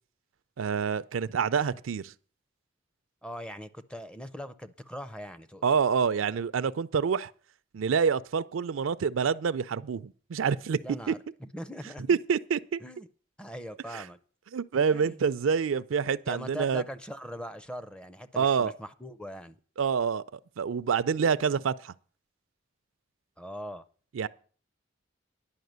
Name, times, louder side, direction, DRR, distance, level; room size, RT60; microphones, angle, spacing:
voice 1, 0.6-2.1 5.6-7.3 7.7-10.8 11.1-11.2 12.1-12.8 13.9-14.0 14.5-16.8 18.4-18.7 19.8-20.2 20.6-21.9 24.1-24.3, right 6 dB, 80° right, 0.4 m, -27 dB
voice 2, 3.2-5.6 10.8-12.2 12.8-13.1 13.4-14.2 14.9-15.2 16.3-19.6 23.4-23.8, equal, 5° left, 0.5 m, -41 dB
10.5 x 5.5 x 8.0 m
head